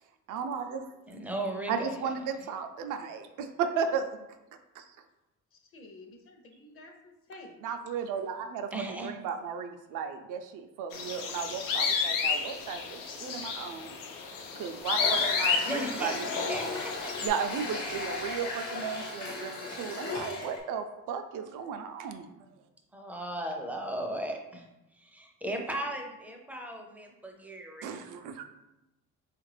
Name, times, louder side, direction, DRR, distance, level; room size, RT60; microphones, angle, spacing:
voice 1, 0.3-0.9 1.7-4.1 4.8-4.9 7.6-8.7 9.0-14.0 14.6-16.5 17.2-22.4 27.8-28.4, right 6 dB, 75° right, 7 dB, 0.5 m, -35 dB
voice 2, 1.1-2.1 8.7-9.1 15.7-17.1 22.9-24.6 24.9-27.9, right 1 dB, 5° right, 2 dB, 0.4 m, -36 dB
voice 3, 5.5-7.6 8.1-8.2, left 2 dB, 45° left, 4 dB, 0.6 m, -51 dB
sound 1, 10.9-17.3, left 5 dB, 80° left, 0.6 m, -32 dB
Water tap faucet, 14.8-20.6, left 3 dB, 65° left, 1.1 m, -36 dB
4.3 x 2.4 x 3.2 m, 0.94 s
cardioid pair, 145°, 32 cm